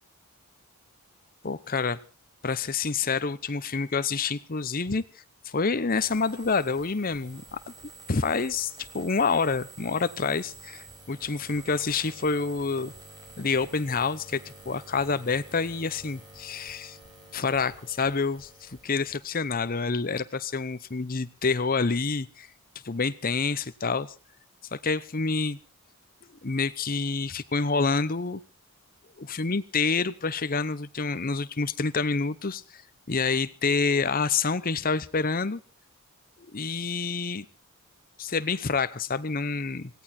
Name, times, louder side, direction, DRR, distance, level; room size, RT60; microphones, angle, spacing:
voice 1, 1.4-2.0 2.4-5.0 5.4-7.7 8.1-12.9 13.4-17.0 17.3-22.5 22.8-24.1 24.7-25.6 26.4-28.4 29.2-32.8 33.1-35.6 36.4-37.5 38.2-40.0, left 4 dB, 40° left, 14 dB, 0.8 m, -28 dB
sound 1, 6.0-19.8, right 3 dB, 20° right, 5.3 m, -49 dB
17.5 x 17.0 x 4.4 m, 0.35 s
head